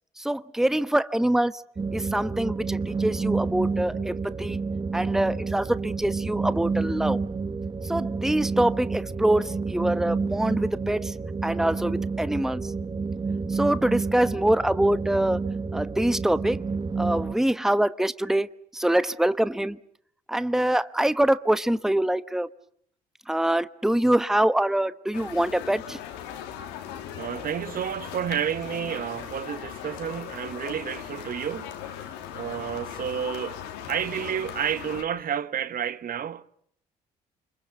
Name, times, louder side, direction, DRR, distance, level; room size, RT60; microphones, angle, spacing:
voice 1, 0.2-1.5 1.9-4.6 4.9-7.2 7.8-11.1 11.4-12.7 13.5-15.4 15.7-16.6 17.0-18.5 18.7-19.8 20.3-22.5 23.3-26.0, right 1 dB, ahead, 1.1 m, -24 dB
sound 1, 1.8-17.3, right 4 dB, 25° right, 1.4 m, -29 dB
sound 2, 25.1-35.0, left 9 dB, 75° left, 2.9 m, -38 dB
voice 2, 27.2-32.0 32.3-33.6 33.9-36.4, right 8 dB, 50° right, 1.3 m, -30 dB
29.5 x 25.5 x 6.9 m
hypercardioid pair, 50°, 19 cm